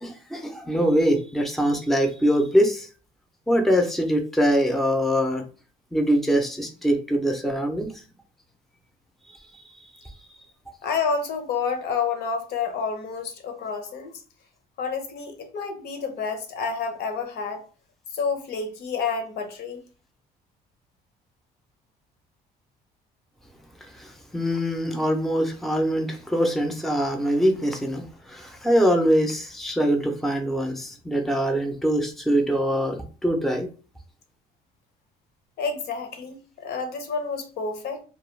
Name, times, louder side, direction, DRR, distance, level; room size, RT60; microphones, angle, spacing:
voice 1, 0.0-2.9 3.5-5.4 5.9-8.0 9.5-9.6 10.0-10.1 23.8-33.7, equal, ahead, 0.5 m, -23 dB
voice 2, 10.8-14.1 14.8-17.6 18.1-19.8 35.6-38.0, left 5 dB, 70° left, 0.7 m, -29 dB
2.3 x 2.2 x 3.1 m
cardioid pair, 110°, 17 cm